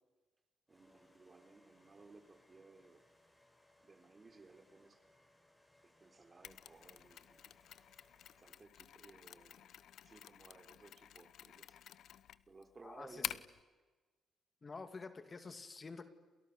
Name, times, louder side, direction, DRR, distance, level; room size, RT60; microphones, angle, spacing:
sound 1, 0.7-8.8, left 1 dB, 10° left, 6.6 m, -70 dB
voice 1, 0.7-3.0 3.8-5.0 6.0-7.5 8.4-9.7 10.1-11.8 12.5-13.4, right 3 dB, 30° right, 7 dB, 3.8 m, -59 dB
Mechanisms, 6.4-13.6, left 10 dB, 75° left, 1.0 m, -49 dB
voice 2, 12.8-13.3 14.6-16.0, left 4 dB, 30° left, 9 dB, 2.5 m, -49 dB
30.0 x 28.0 x 6.9 m, 1.3 s
cardioid pair, 95°, 0 cm